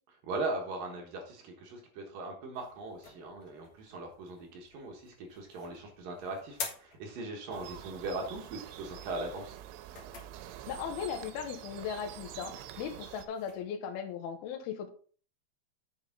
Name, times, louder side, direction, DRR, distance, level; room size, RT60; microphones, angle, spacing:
voice 1, 0.2-9.6, right 2 dB, 60° right, 1 dB, 2.6 m, -39 dB
sound 1, 2.5-13.6, left 6 dB, 55° left, 2.1 m, -50 dB
sound 2, 7.5-13.3, right 12 dB, 80° right, 3.0 m, -46 dB
voice 2, 10.7-14.9, left 7 dB, 70° left, 4 dB, 2.6 m, -38 dB
8.7 x 6.8 x 3.8 m, 0.43 s
omnidirectional pair, 5.3 m